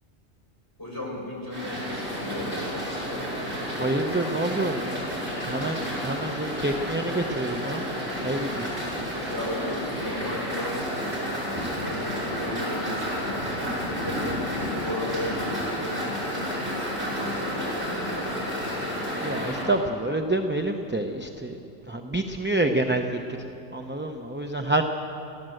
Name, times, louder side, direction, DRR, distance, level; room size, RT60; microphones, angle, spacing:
voice 1, 0.8-2.7 9.3-13.4 13.8-18.3, left 1 dB, 20° left, -5 dB, 6.6 m, -35 dB
sound 1, 1.5-19.6, equal, 70° right, 7.1 m, -31 dB
voice 2, 3.8-5.0 5.4-7.8 8.2-8.7 19.2-21.6 21.9-24.8, right 2 dB, 10° right, 4 dB, 0.6 m, -27 dB
29.0 x 13.0 x 7.8 m, 2.9 s
omnidirectional pair, 1.2 m